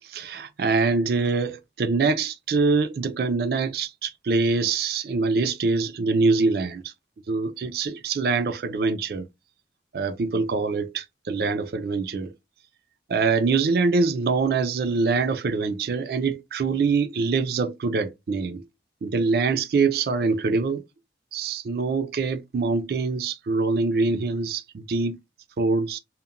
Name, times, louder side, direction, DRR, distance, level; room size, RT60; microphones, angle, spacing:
voice 1, 0.1-6.8 7.3-9.2 9.9-12.3 13.1-18.6 19.0-20.8 21.3-25.2 25.6-26.0, right 4 dB, 55° right, 0.4 m, -24 dB
2.8 x 2.0 x 2.4 m
head